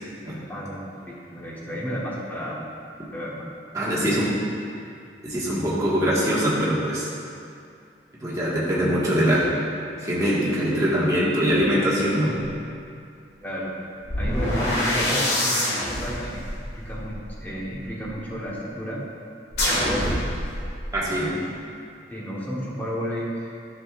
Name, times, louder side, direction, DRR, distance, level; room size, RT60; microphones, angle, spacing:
voice 1, 0.5-0.8 1.3-2.7 3.1-3.5 3.7-4.3 13.4-19.0 19.6-20.3 21.0-21.4 22.1-23.6, equal, 10° left, -5 dB, 1.0 m, -32 dB
voice 2, 3.7-4.3 5.2-7.1 8.2-9.5 10.0-12.4 20.9-21.3, equal, 20° right, -8 dB, 1.4 m, -22 dB
sound 1, 14.0-18.1 19.5-21.0, left 1 dB, 70° left, 1.7 m, -26 dB
9.9 x 6.2 x 2.4 m, 2.4 s
head